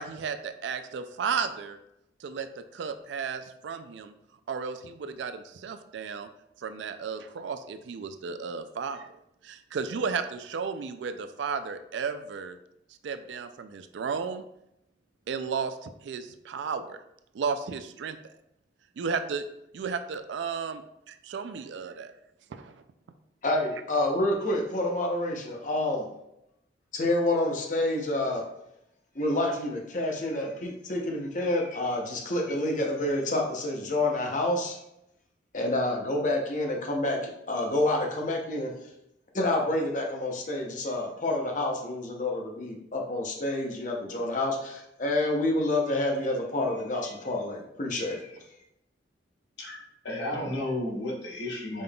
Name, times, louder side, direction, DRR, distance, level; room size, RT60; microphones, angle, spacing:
voice 1, 0.0-1.8 2.2-4.1 4.5-6.3 6.6-9.1 9.4-12.6 13.0-14.5 15.3-17.0 17.3-18.2 19.0-19.5 19.7-22.1 22.5-22.8, right 5 dB, 75° right, 9 dB, 0.3 m, -34 dB
voice 2, 23.4-26.1 26.9-28.4 29.1-34.8 35.5-38.7 39.3-48.3, left 1 dB, 45° left, 1 dB, 0.7 m, -28 dB
voice 3, 49.6-51.8, left 1 dB, 70° left, -4 dB, 1.2 m, -33 dB
5.2 x 3.6 x 2.3 m, 0.83 s
head